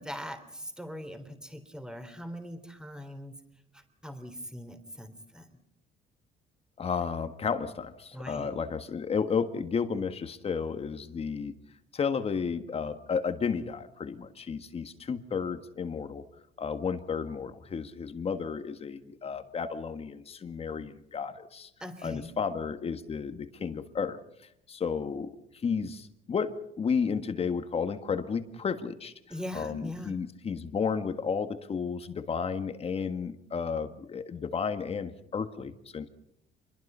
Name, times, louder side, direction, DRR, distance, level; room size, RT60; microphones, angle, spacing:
voice 1, 0.0-3.4 3.7-5.5 8.1-8.5 21.8-22.3 29.3-30.2, equal, 5° right, 9 dB, 3.4 m, -41 dB
voice 2, 6.8-11.6 11.9-16.2 16.6-21.7 22.0-24.2 24.7-25.3 25.6-29.1 29.5-36.1, left 6 dB, 35° left, 9 dB, 1.7 m, -32 dB
26.5 x 22.0 x 5.6 m, 0.80 s
cardioid pair, 110°, 17 cm